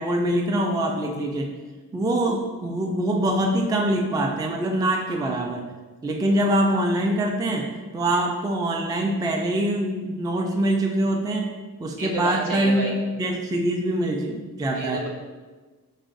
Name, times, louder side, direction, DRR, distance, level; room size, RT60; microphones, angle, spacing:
voice 1, 0.0-1.5 1.9-5.7 6.0-11.5 11.8-12.9 13.2-15.0, right 1 dB, 10° right, 2 dB, 0.3 m, -24 dB
voice 2, 12.0-13.0 14.7-15.1, right 1 dB, 60° right, -1 dB, 0.7 m, -29 dB
3.1 x 2.5 x 3.8 m, 1.3 s
wide cardioid pair, 55°, 36 cm